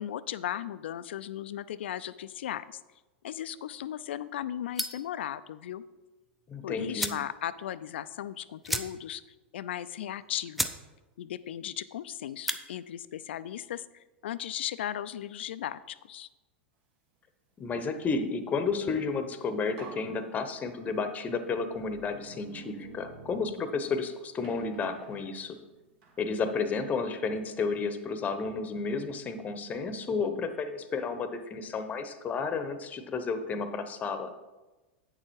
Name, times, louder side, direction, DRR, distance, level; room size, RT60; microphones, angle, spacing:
voice 1, 0.0-2.8 3.2-5.8 6.6-9.2 9.5-10.7 11.2-16.3, left 11 dB, 70° left, 15 dB, 0.4 m, -36 dB
sound 1, 4.7-5.1 6.5-6.6 6.9-7.3 7.7-7.8 8.0-8.1 8.6-9.2 9.6-9.7 10.2-10.3 10.5-10.8 11.2-11.5 12.3-12.6, equal, ahead, 0.6 m, -33 dB
voice 2, 6.5-7.1 17.6-25.6 26.2-34.3, left 4 dB, 25° left, 9 dB, 0.9 m, -32 dB
sound 2, 19.2-19.3 19.8-21.1 21.7-24.0 24.4-26.3, right 4 dB, 60° right, 2.1 m, -50 dB
8.6 x 6.8 x 4.6 m, 1.1 s
hypercardioid pair, 100°, 6 cm